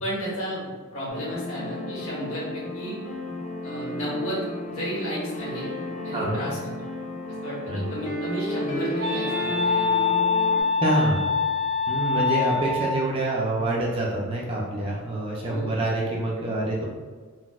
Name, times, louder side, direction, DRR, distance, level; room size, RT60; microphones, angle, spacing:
voice 1, 0.0-3.0 3.6-4.4 4.7-5.7 6.0-6.7 7.4-9.8 15.4-15.7, equal, 65° left, -7 dB, 1.2 m, -33 dB
sound 1, 1.1-10.6, left 1 dB, 35° left, 0.5 m, -33 dB
Wind instrument woodwind instrument, 7.8-13.1, left 4 dB, 85° right, 0.6 m, -25 dB
voice 2, 10.8-11.3 11.9-16.8, right 1 dB, 25° right, -3 dB, 0.4 m, -26 dB
3.9 x 2.1 x 2.3 m, 1.5 s
head